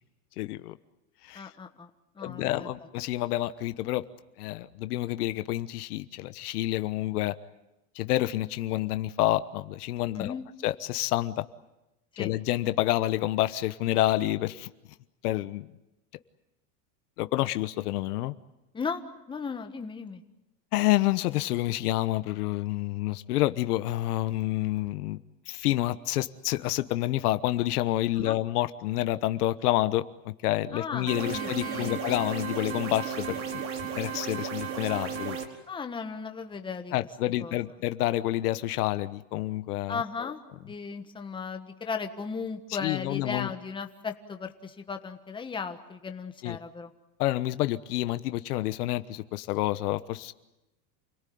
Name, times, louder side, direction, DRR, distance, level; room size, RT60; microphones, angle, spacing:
voice 1, 0.4-0.8 1.2-1.5 2.2-4.0 4.4-7.3 7.9-10.4 10.6-11.5 12.2-14.7 15.2-15.7 17.2-18.3 20.7-25.2 25.5-33.7 34.0-35.4 36.9-40.0 42.8-43.5 46.4-46.6 47.2-50.3, left 15 dB, 75° left, 12 dB, 1.2 m, -28 dB
voice 2, 1.3-1.9 2.1-2.7 10.1-10.4 12.2-12.3 18.7-19.0 19.3-20.2 28.2-28.4 30.7-32.0 35.7-36.9 37.4-37.6 39.9-46.9, left 5 dB, 10° left, 6 dB, 1.4 m, -36 dB
sound 1, 31.1-35.5, right 7 dB, 40° right, 4.5 m, -34 dB
29.0 x 18.5 x 9.4 m, 0.95 s
supercardioid pair, 150°, 46 cm